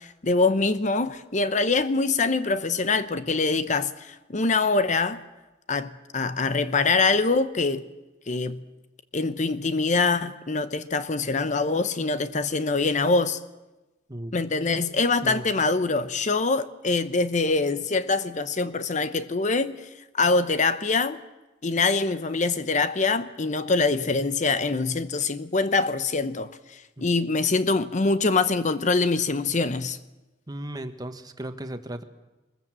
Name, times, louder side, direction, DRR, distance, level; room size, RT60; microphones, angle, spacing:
voice 1, 0.0-5.2 5.7-7.8 8.3-8.6 9.1-13.4 14.3-19.7 20.1-21.2 21.6-26.5 27.0-30.0, left 3 dB, 45° left, 0.9 m, -24 dB
voice 2, 30.5-32.0, right 1 dB, 25° right, 1.5 m, -35 dB
23.5 x 21.0 x 7.7 m
head